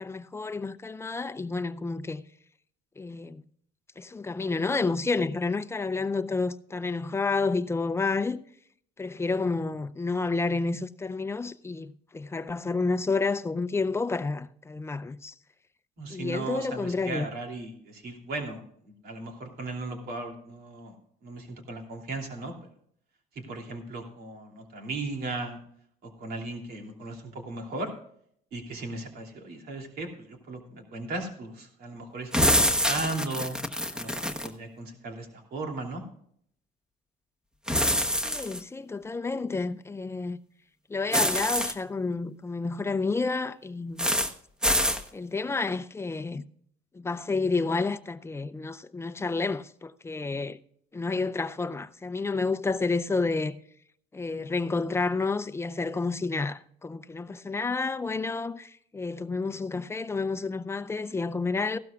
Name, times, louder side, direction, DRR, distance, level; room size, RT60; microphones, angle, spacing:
voice 1, 0.0-2.2 3.0-3.4 4.0-8.4 9.0-15.3 16.1-17.3 38.2-40.4 40.9-44.2 45.1-46.4 46.9-50.6 50.9-53.6 54.1-61.8, left 3 dB, 15° left, 0.5 m, -30 dB
voice 2, 16.0-21.0 21.2-22.5 23.3-25.6 26.0-27.9 28.5-32.4 32.7-33.6 33.9-36.0, right 2 dB, 65° right, 2.9 m, -37 dB
sound 1, 32.3-34.5 37.7-38.6 41.1-41.7 44.0-44.3 44.6-45.0, equal, 5° right, 1.1 m, -25 dB
15.5 x 12.5 x 2.4 m
cardioid pair, 110°, 17 cm